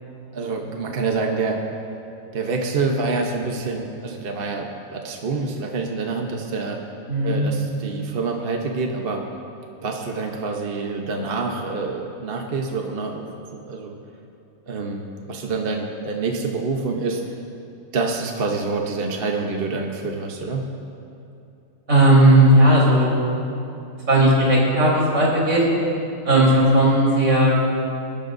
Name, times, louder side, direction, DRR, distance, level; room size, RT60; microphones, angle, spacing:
voice 1, 0.3-1.6 2.3-6.8 7.2-9.2 9.8-14.0 14.7-17.2 17.9-20.7, right 4 dB, 45° right, 1 dB, 1.1 m, -27 dB
voice 2, 7.1-7.5 21.9-23.1 24.1-25.6 26.2-27.5, right 1 dB, 80° right, -5 dB, 4.3 m, -16 dB
27.5 x 12.0 x 2.6 m, 2.7 s
omnidirectional pair, 1.4 m